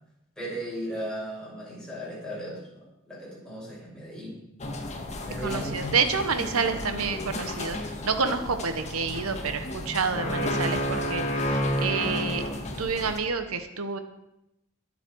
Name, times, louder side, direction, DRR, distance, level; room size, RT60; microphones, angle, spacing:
voice 1, 0.4-4.4 5.2-6.0, right 1 dB, 5° left, -6 dB, 6.4 m, -36 dB
sound 1, 4.6-13.2, left 1 dB, 30° left, 1.6 m, -31 dB
voice 2, 5.4-12.4 12.8-14.0, right 5 dB, 85° right, 8 dB, 1.1 m, -29 dB
22.5 x 7.6 x 4.7 m, 0.85 s
head